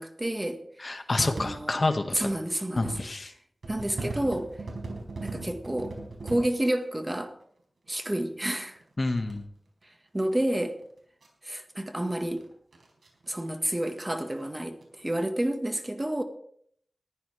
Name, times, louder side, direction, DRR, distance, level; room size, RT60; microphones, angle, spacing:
voice 1, 0.0-1.8 2.1-3.0 3.7-4.5 5.2-6.0 6.2-7.3 7.9-8.8 9.8-10.8 11.4-12.4 13.3-16.2, right 1 dB, 20° right, 6 dB, 1.6 m, -30 dB
voice 2, 0.8-2.3 2.8-3.3 9.0-9.4, left 2 dB, 45° left, 6 dB, 1.7 m, -28 dB
sound 1, 1.4-1.6 2.5-3.1 3.6-6.4 7.9-8.0 8.7-9.3 10.3-10.4 10.7-10.8 11.2-11.3 11.9-13.5 13.9-14.0 14.2-14.5 14.8-15.0, right 2 dB, 90° right, 4.8 m, -38 dB
21.0 x 15.0 x 3.4 m, 0.65 s
wide cardioid pair, 80°, 0 cm